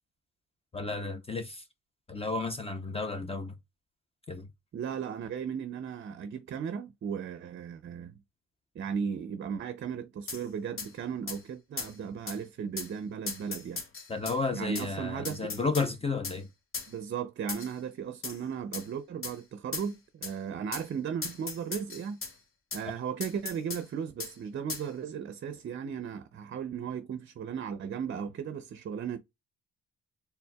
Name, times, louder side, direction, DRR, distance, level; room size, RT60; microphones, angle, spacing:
voice 1, 0.7-1.6 2.1-3.5 4.3-4.5 14.1-16.5, left 3 dB, 20° left, 0.6 m, -32 dB
voice 2, 4.7-8.2 8.7-13.8 14.5-15.5 16.9-22.2 22.7-29.2, right 7 dB, 40° right, 0.5 m, -36 dB
sound 1, 10.3-10.4 10.8-10.9 11.3-11.4 11.8-11.9 12.3-12.4 12.8-12.9 13.3-14.4 14.8-14.9 15.3-15.9 16.2-16.4 16.7-16.9 17.5-17.8 18.2-18.4 18.7-18.9 19.2-19.4 19.7-19.9 20.2-20.3 20.7-20.9 21.2-22.3 22.7-22.8 23.2-23.8 24.2-24.3 24.7-24.9, left 4 dB, 45° left, 1.1 m, -37 dB
4.4 x 3.4 x 2.2 m
cardioid pair, 90°, 30 cm